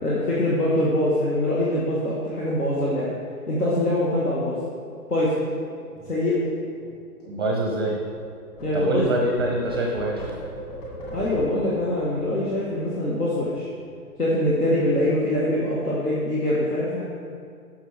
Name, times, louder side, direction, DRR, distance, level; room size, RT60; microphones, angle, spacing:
voice 1, 0.0-3.1 3.5-4.6 5.1-5.3 6.1-6.4 8.6-9.1 11.1-13.7 14.2-17.0, left 1 dB, 75° left, -7 dB, 1.8 m, -23 dB
sound 1, 4.8-8.2 8.5-13.5 13.8-14.0 14.3-14.9, equal, 25° left, 2.1 m, -41 dB
voice 2, 7.3-8.0 8.7-10.2, right 1 dB, 15° right, -1 dB, 0.5 m, -24 dB
12.5 x 5.6 x 3.5 m, 2.3 s
figure-of-eight pair, 125°, 46 cm